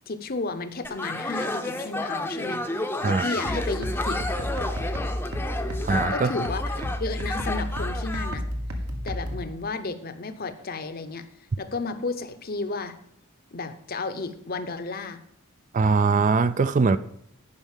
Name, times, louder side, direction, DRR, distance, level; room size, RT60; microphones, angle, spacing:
voice 1, 0.1-4.2 6.1-8.4 9.0-11.3 11.6-13.0 13.5-15.2, left 3 dB, 45° left, 0.7 m, -33 dB
sound 1, 0.8-8.4, left 1 dB, 10° left, 0.7 m, -31 dB
sound 2, 3.5-9.5, equal, 80° right, 1.6 m, -31 dB
voice 2, 5.8-6.3 15.7-17.0, right 4 dB, 35° right, 0.3 m, -21 dB
10.5 x 5.4 x 7.3 m
head